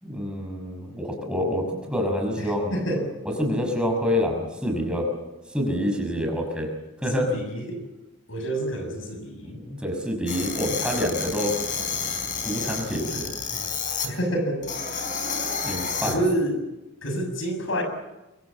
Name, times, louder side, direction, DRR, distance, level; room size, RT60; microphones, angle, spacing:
voice 1, 0.0-2.7 3.4-5.1 5.5-6.7 7.0-7.3 9.4-11.5 12.4-13.3 15.6-16.2, equal, 5° right, 2 dB, 5.8 m, -27 dB
voice 2, 2.4-3.1 7.1-7.9 8.3-9.6 14.0-14.7 16.0-16.6 17.0-17.8, right 1 dB, 80° left, 6 dB, 6.6 m, -28 dB
sound 1, 10.3-14.1 14.6-16.1, left 5 dB, 40° left, 4.7 m, -30 dB
26.5 x 23.0 x 7.4 m, 1.0 s
head